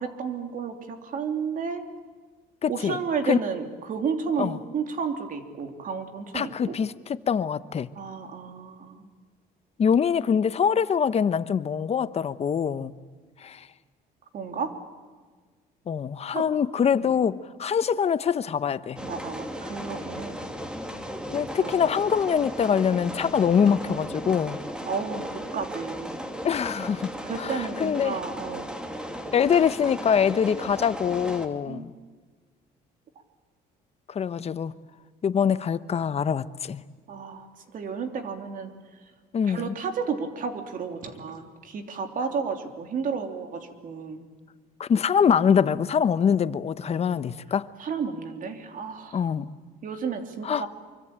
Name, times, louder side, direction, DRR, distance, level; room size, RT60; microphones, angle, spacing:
voice 1, 0.0-1.8 2.7-6.8 7.9-9.1 14.3-14.7 16.3-16.5 16.9-17.1 19.0-20.4 21.6-21.7 24.9-26.2 27.2-28.7 31.6-31.9 37.1-38.7 39.4-44.3 47.8-49.3 49.8-50.7, right 5 dB, 55° right, 3.2 m, -32 dB
voice 2, 2.6-3.0 3.3-3.4 4.4-4.6 6.3-7.9 9.8-12.9 13.4-13.7 15.9-19.0 21.3-24.6 26.4-27.1 27.4-28.2 29.3-31.9 34.1-34.7 35.2-36.8 39.3-39.7 44.8-47.7 49.1-49.5 50.4-50.6, left 7 dB, 40° left, 1.0 m, -24 dB
sound 1, 19.0-31.5, equal, 5° right, 2.7 m, -36 dB
25.0 x 24.0 x 8.9 m
cardioid pair, 110°, 17 cm